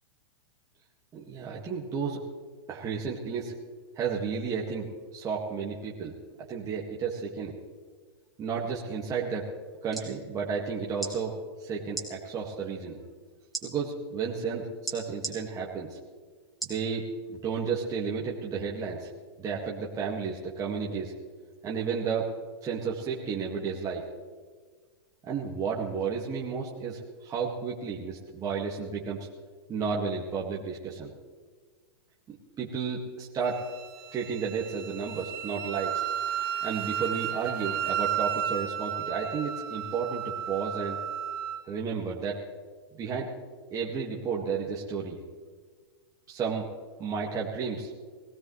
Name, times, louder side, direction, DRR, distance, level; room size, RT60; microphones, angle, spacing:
voice 1, 1.1-2.2 2.7-3.5 4.0-6.1 6.5-7.6 8.4-9.5 9.8-11.3 11.6-13.0 13.6-16.0 16.6-19.1 19.4-21.1 21.6-22.3 22.6-24.0 25.2-29.3 29.7-31.1 32.3-33.6 34.1-36.0 36.6-41.0 41.7-42.4 43.0-43.3 43.7-45.2 46.3-46.7 47.0-47.9, right 5 dB, 25° right, -3 dB, 1.9 m, -32 dB
sound 1, 9.7-10.1 10.9-11.1 11.9-12.1 13.5-13.7 14.9-15.4 16.6-16.8 17.4-17.5, right 3 dB, ahead, 3.1 m, -35 dB
Wind instrument woodwind instrument, 33.4-41.6, right 9 dB, 60° right, 1.4 m, -33 dB
21.0 x 17.0 x 3.2 m, 1.5 s
hypercardioid pair, 130°, 14 cm